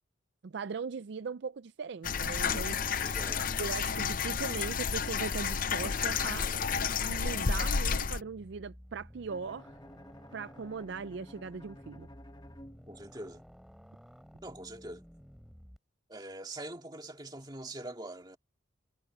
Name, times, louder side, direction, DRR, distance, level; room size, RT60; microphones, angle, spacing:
voice 1, 0.4-3.1 3.6-6.5 7.0-9.8 10.3-12.1, right 5 dB, 60° right, 0.4 m, -39 dB
sound 1, 2.0-8.2, left 6 dB, 45° left, 0.6 m, -31 dB
sound 2, 2.5-15.8, equal, ahead, 4.9 m, -54 dB
voice 2, 3.0-3.6 12.9-13.4 14.4-15.0 16.1-18.4, right 1 dB, 20° right, 2.2 m, -44 dB
Bowed string instrument, 9.3-13.4, left 1 dB, 20° left, 1.2 m, -54 dB
head